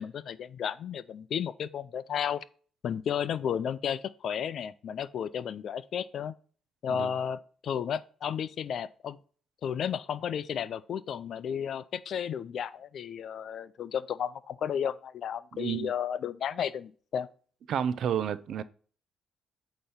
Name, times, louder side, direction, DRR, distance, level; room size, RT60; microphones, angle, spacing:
voice 1, 0.0-2.4 2.8-6.3 6.8-9.2 9.6-17.3, left 8 dB, 65° left, 0.4 m, -33 dB
voice 2, 15.5-15.9 17.7-18.6, right 8 dB, 70° right, 0.5 m, -30 dB
8.5 x 3.0 x 5.6 m
cardioid pair, 90°, 0 cm